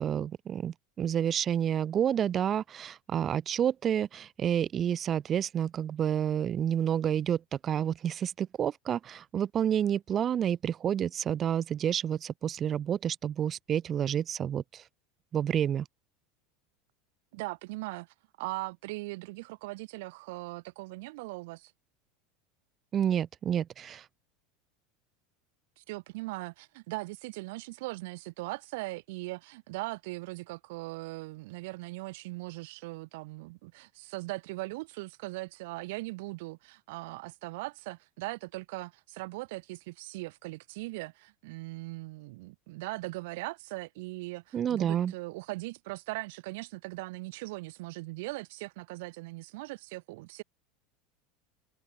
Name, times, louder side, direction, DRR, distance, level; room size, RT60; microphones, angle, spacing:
voice 1, 0.0-14.8 15.3-15.9 22.9-24.0 44.5-45.1, right 9 dB, 35° right, 0.4 m, -29 dB
voice 2, 17.3-21.7 25.8-50.4, right 23 dB, 70° right, 2.0 m, -40 dB
hypercardioid pair, 90°, 0 cm